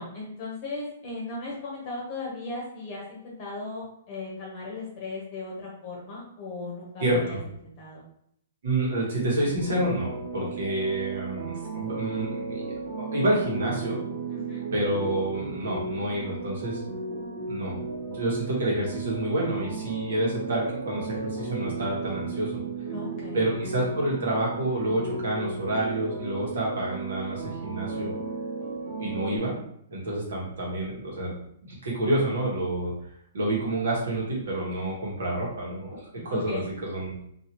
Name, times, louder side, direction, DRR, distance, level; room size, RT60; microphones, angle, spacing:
voice 1, 0.0-8.0 10.4-10.5 14.3-14.6 22.9-23.5 34.7-34.9 36.2-36.6, left 3 dB, 35° left, -4 dB, 0.9 m, -37 dB
voice 2, 7.0-7.4 8.6-12.7 13.0-14.0 14.7-16.8 17.5-22.6 23.3-28.1 29.0-29.5 29.9-31.3 31.6-32.9 33.3-37.1, right 1 dB, 75° right, -4 dB, 1.5 m, -28 dB
sound 1, 9.4-29.4, right 4 dB, 55° right, 0.9 m, -35 dB
2.8 x 2.7 x 3.0 m, 0.72 s
hypercardioid pair, 150°, 0 cm